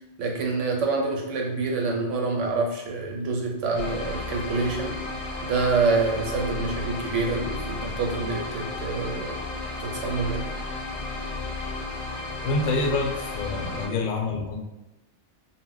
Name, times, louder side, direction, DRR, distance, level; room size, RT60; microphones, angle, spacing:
voice 1, 0.2-5.0 5.4-9.4 9.8-10.5, right 3 dB, 85° right, 1 dB, 1.0 m, -27 dB
sound 1, 3.7-13.9, left 3 dB, 55° left, 0.7 m, -33 dB
voice 2, 12.4-14.6, left 3 dB, 80° left, 1 dB, 0.9 m, -27 dB
2.2 x 2.0 x 3.7 m, 0.98 s
omnidirectional pair, 1.2 m